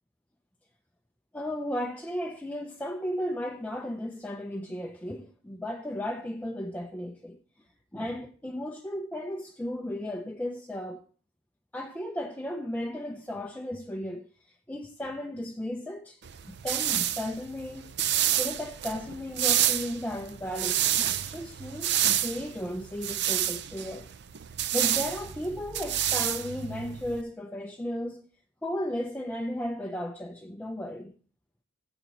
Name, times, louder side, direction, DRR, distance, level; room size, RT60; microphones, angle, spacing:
voice 1, 1.3-7.4 7.9-11.0 11.7-16.2 16.5-17.9 18.4-24.1 24.7-28.3 28.6-31.1, left 1 dB, 10° left, 0.5 m, -35 dB
sound 1, 16.2-27.2, right 11 dB, 55° right, 0.6 m, -29 dB
16.0 x 8.0 x 2.9 m
head